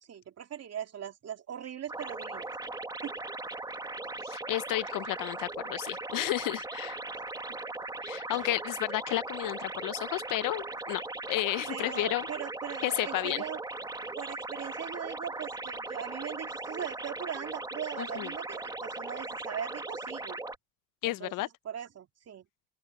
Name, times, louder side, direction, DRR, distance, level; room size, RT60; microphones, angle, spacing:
voice 1, 0.0-2.5 3.0-3.2 7.5-7.6 8.3-8.5 11.7-13.6 14.1-20.4 21.0-22.5, right 9 dB, 40° right, 3.0 m, -40 dB
sound 1, 1.9-20.6, right 2 dB, 10° right, 1.7 m, -39 dB
voice 2, 4.2-7.0 8.0-12.3 12.8-13.4 18.0-18.3 21.0-21.5, left 17 dB, 55° left, 0.7 m, -32 dB
open air
supercardioid pair, 105°, 38 cm